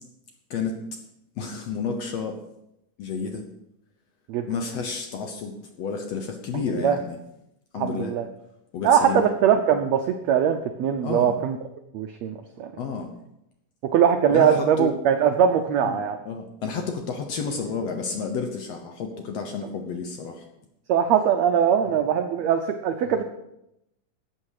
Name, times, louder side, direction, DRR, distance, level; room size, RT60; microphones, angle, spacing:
voice 1, 1.4-2.4 3.0-3.4 4.5-7.2 7.7-8.1 8.7-9.3 11.0-11.3 12.8-13.1 14.3-14.9 15.8-20.4 21.8-22.0 23.1-23.2, left 5 dB, 65° left, 4 dB, 1.8 m, -31 dB
voice 2, 6.5-7.0 7.7-8.2 8.8-11.6 11.9-12.7 13.9-16.2 20.9-23.2, right 8 dB, 85° right, 6 dB, 1.5 m, -21 dB
13.0 x 8.4 x 4.9 m, 0.83 s
omnidirectional pair, 3.9 m